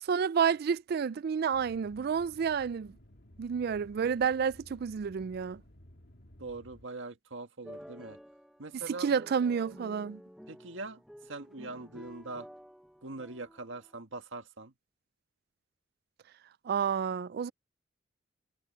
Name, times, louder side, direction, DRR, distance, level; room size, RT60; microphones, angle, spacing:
voice 1, 0.0-3.0 3.4-5.6 8.7-10.2 16.6-17.5, right 6 dB, 55° right, 0.3 m, -30 dB
sound 1, 1.5-6.9, left 1 dB, 60° left, 1.9 m, -56 dB
voice 2, 6.4-8.2 8.6-9.1 10.5-11.0 11.3-12.5 13.0-14.7, right 3 dB, 90° right, 1.7 m, -42 dB
sound 2, 7.6-14.0, equal, ahead, 1.0 m, -51 dB
head